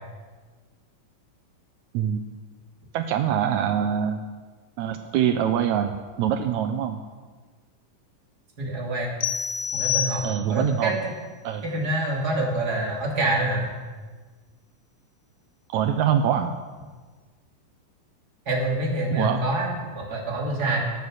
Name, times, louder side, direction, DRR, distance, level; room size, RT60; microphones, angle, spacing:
voice 1, 2.9-4.2 4.8-7.0 10.2-11.0 11.4-11.6 15.7-16.5 19.1-19.4, right 9 dB, 85° right, 7 dB, 1.6 m, -24 dB
voice 2, 8.6-9.1 9.7-11.1 11.6-13.7 18.5-20.9, right 2 dB, 30° right, -2 dB, 2.9 m, -26 dB
sound 1, 9.2-10.7, left 8 dB, 80° left, 1.4 m, -28 dB
22.0 x 7.4 x 6.3 m, 1.4 s
omnidirectional pair, 4.2 m